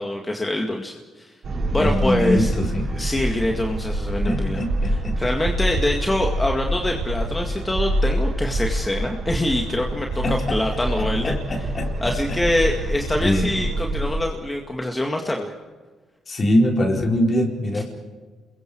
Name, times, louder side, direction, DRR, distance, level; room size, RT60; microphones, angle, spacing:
voice 1, 0.0-1.3 1.7-2.5 2.9-11.4 12.0-15.5 17.7-17.8, left 1 dB, 15° left, 2 dB, 2.1 m, -25 dB
sound 1, 1.4-14.1, right 1 dB, 50° right, 4.9 m, -26 dB
voice 2, 1.8-2.9 4.2-5.2 10.2-10.6 11.0-12.4 13.2-13.5 16.3-17.8, left 1 dB, 40° left, 2 dB, 4.3 m, -23 dB
28.0 x 22.0 x 4.7 m, 1.4 s
cardioid pair, 90°, 0 cm